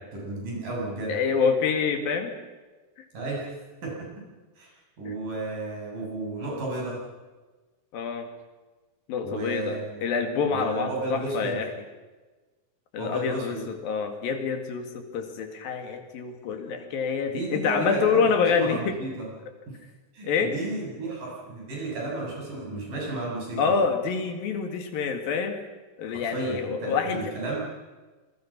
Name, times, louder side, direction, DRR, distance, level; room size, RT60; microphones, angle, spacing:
voice 1, 0.1-1.2 3.1-4.2 4.6-7.0 9.2-10.0 10.5-11.6 13.0-13.6 17.3-19.3 19.7-19.8 20.1-23.7 26.1-27.6, right 2 dB, 65° right, -3 dB, 9.5 m, -33 dB
voice 2, 1.1-2.3 5.1-5.2 7.9-8.3 9.1-11.7 12.9-19.0 20.2-20.5 23.6-25.6 26.0-27.3, left 5 dB, 80° left, 6 dB, 4.0 m, -27 dB
26.5 x 21.0 x 6.1 m, 1.2 s
omnidirectional pair, 4.1 m